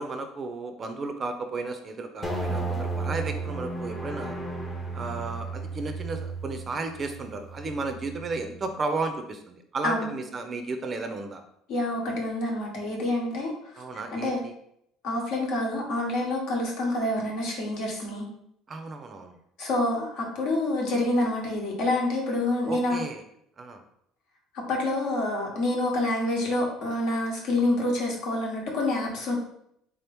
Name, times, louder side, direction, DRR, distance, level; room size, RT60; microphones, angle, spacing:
voice 1, 0.0-4.4 4.9-11.4 13.8-14.5 18.7-19.3 22.7-23.2 23.6-23.8, right 3 dB, 30° right, 6 dB, 0.4 m, -33 dB
sound 1, 2.2-8.7, right 3 dB, 15° left, 0.6 m, -34 dB
voice 2, 11.7-13.5 14.1-14.4 15.0-18.3 19.6-23.0 24.7-29.3, left 2 dB, 65° left, -1 dB, 1.1 m, -27 dB
3.6 x 2.9 x 3.4 m, 0.74 s
cardioid pair, 140°, 0 cm